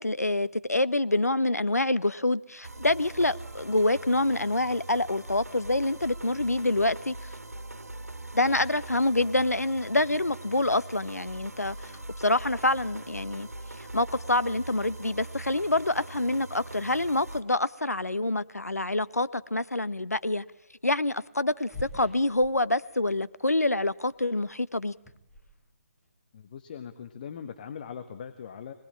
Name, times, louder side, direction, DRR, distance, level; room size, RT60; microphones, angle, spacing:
voice 1, 0.0-7.3 8.3-11.9 12.2-13.5 13.9-20.4 20.8-24.9, left 2 dB, 85° left, 1.1 m, -26 dB
sound 1, 2.6-17.4, right 2 dB, 75° right, 2.4 m, -42 dB
sound 2, 14.6-16.1 17.2-17.3 19.1-19.4 19.7-19.8 21.3-23.2 23.5-23.8 24.1-26.1, left 2 dB, 10° left, 4.5 m, -49 dB
voice 2, 26.3-28.7, left 7 dB, 35° left, 1.4 m, -40 dB
25.5 x 19.5 x 8.8 m
figure-of-eight pair, 145°, 8 cm